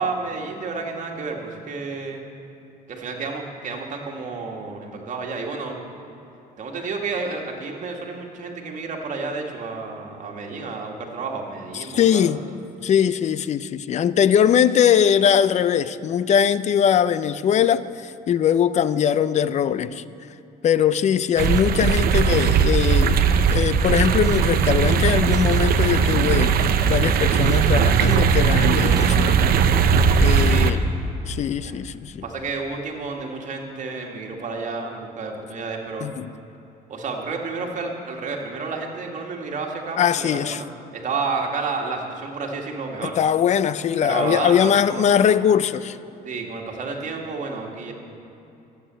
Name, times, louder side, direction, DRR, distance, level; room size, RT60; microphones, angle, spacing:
voice 1, 0.0-2.2 2.9-5.8 6.6-12.4 30.4-30.9 31.6-31.8 32.2-36.1 36.9-40.7 40.9-43.2 44.0-45.0 46.2-47.9, right 4 dB, 45° right, 2.0 m, -30 dB
voice 2, 11.7-12.4 12.8-20.0 20.6-23.2 23.5-29.5 30.2-30.8 31.3-32.2 36.0-36.3 40.0-40.6 43.0-46.0, left 8 dB, 45° left, 0.5 m, -21 dB
sound 1, 21.4-30.7, right 6 dB, 65° right, 0.7 m, -18 dB
12.5 x 8.2 x 7.6 m
cardioid pair, 110°, 17 cm